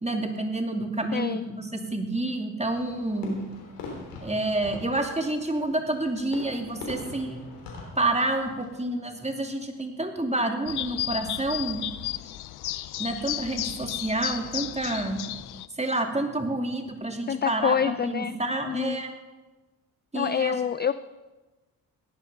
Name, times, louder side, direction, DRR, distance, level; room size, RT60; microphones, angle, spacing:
voice 1, 0.0-3.4 4.2-7.4 8.0-11.8 13.0-15.2 15.8-19.1 20.1-20.5, right 2 dB, 15° right, 4 dB, 2.6 m, -29 dB
voice 2, 1.1-1.5 17.3-18.4 18.7-19.0 20.1-20.9, left 8 dB, 25° left, 15 dB, 0.4 m, -26 dB
Fireworks, 2.7-8.8, left 3 dB, 85° left, 3.4 m, -42 dB
sound 1, 10.7-15.7, left 14 dB, 65° left, 0.7 m, -33 dB
17.0 x 10.5 x 5.5 m, 1.2 s
hypercardioid pair, 50°, 42 cm